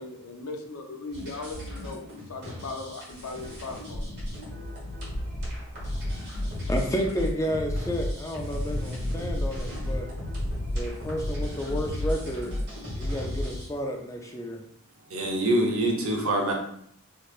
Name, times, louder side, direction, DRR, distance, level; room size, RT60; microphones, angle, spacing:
voice 1, 0.0-2.0 2.3-4.1, left 3 dB, 70° left, 3 dB, 0.6 m, -38 dB
sound 1, 1.1-13.7, left 1 dB, 50° right, 1.4 m, -33 dB
voice 2, 6.7-10.1 10.7-12.5 13.0-14.6 15.4-15.5, equal, 15° left, 2 dB, 0.3 m, -31 dB
voice 3, 15.1-16.5, right 1 dB, 65° right, 0 dB, 0.7 m, -25 dB
3.2 x 3.0 x 2.4 m, 0.70 s
head